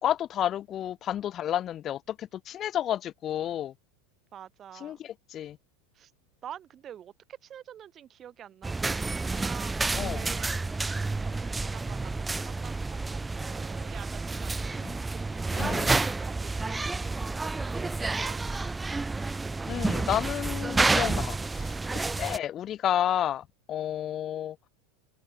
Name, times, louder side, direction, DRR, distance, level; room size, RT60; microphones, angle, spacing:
voice 1, 0.0-3.7 4.8-5.6 10.0-10.2 14.8-14.9 15.5-15.9 19.7-24.6, left 11 dB, 30° left, 1.2 m, -31 dB
voice 2, 4.3-5.0 5.9-6.1 6.4-10.6 10.9-18.4, right 10 dB, 30° right, 4.8 m, -47 dB
sound 1, 8.6-22.4, right 3 dB, 10° right, 1.1 m, -30 dB
open air
figure-of-eight pair, 85°, 0 cm